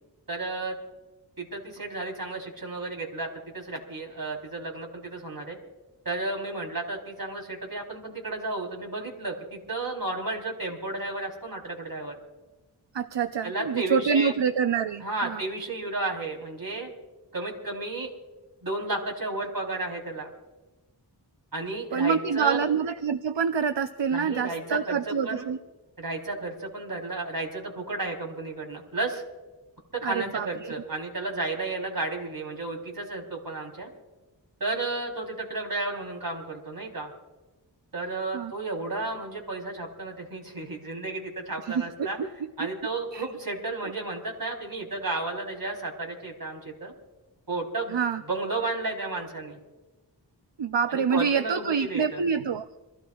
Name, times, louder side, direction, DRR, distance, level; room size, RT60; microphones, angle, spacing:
voice 1, 0.3-0.8 1.4-5.6 6.0-12.1 13.4-14.3 15.0-16.9 17.3-18.1 18.6-20.3 21.5-22.6 24.1-25.5 26.0-29.2 29.9-33.9 34.6-37.1 37.9-42.2 42.6-46.9 47.5-48.0 48.3-49.6 50.9-52.2, right 2 dB, 50° right, 1 dB, 3.8 m, -33 dB
voice 2, 12.9-15.4 21.9-25.6 30.0-30.8 38.3-38.5 41.7-42.3 43.1-43.3 43.8-43.9 47.9-48.2 50.6-52.7, right 6 dB, 75° right, 8 dB, 0.7 m, -26 dB
27.0 x 16.0 x 2.4 m, 1.1 s
wide cardioid pair, 55°, 43 cm